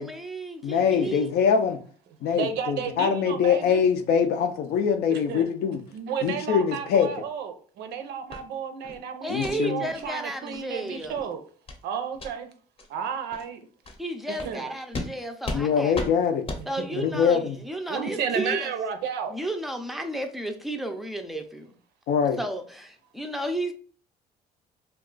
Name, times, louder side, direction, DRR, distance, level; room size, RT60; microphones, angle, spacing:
voice 1, 0.0-1.3 9.2-11.3 14.0-16.0 16.7-18.7 19.3-21.8 22.4-23.7, right 1 dB, ahead, 0.4 m, -33 dB
voice 2, 0.6-1.8 2.2-5.8 6.2-7.1 9.3-9.8 15.5-16.5 17.0-17.5 22.1-22.4, left 7 dB, 70° left, 0.5 m, -23 dB
voice 3, 2.3-3.8 5.1-5.4 5.9-11.4 11.8-12.5 12.9-13.6 14.3-14.7 15.7-15.8 16.6-17.2 17.9-19.4, right 7 dB, 80° right, 0.5 m, -32 dB
sound 1, 8.3-8.4 8.8-9.0 9.4-9.6 10.0-10.1 10.5-10.6 11.0-11.2 11.7-11.8 12.1-12.3 12.8-12.9 13.3-13.4 13.8-14.0 14.4-14.5 14.9-15.1 15.4-15.6 15.9-16.1 16.5-16.6, left 2 dB, 35° left, 0.7 m, -34 dB
2.4 x 2.3 x 3.8 m
cardioid pair, 110°, 17 cm